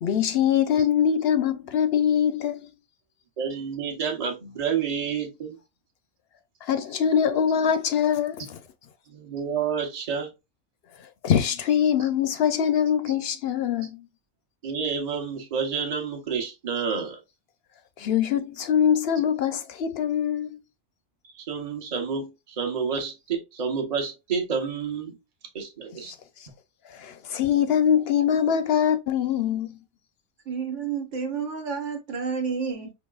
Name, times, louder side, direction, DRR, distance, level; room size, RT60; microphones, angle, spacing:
voice 1, 0.0-2.6 6.7-8.6 11.2-14.0 18.0-20.6 26.0-26.1 26.9-29.7, left 8 dB, 65° left, 0.7 m, -23 dB
voice 2, 3.4-5.6 9.1-10.3 14.6-17.2 21.4-25.1 25.5-26.1, right 6 dB, 35° right, 0.9 m, -29 dB
voice 3, 30.5-32.9, right 6 dB, 80° right, 1.2 m, -30 dB
4.7 x 2.8 x 2.3 m
omnidirectional pair, 1.3 m